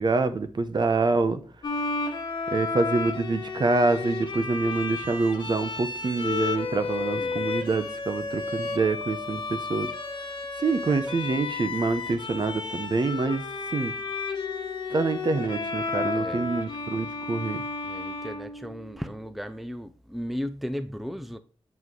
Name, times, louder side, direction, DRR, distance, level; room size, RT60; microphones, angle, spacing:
voice 1, 0.0-1.4 2.5-9.9 10.6-13.4 13.7-13.9 14.9-17.6, right 3 dB, 45° right, 0.8 m, -26 dB
Bowed string instrument, 1.6-19.0, left 4 dB, 50° left, 1.7 m, -32 dB
voice 2, 7.1-7.6 16.1-16.6 17.8-21.4, equal, ahead, 0.5 m, -36 dB
7.2 x 6.0 x 3.2 m
wide cardioid pair, 120°, 10 cm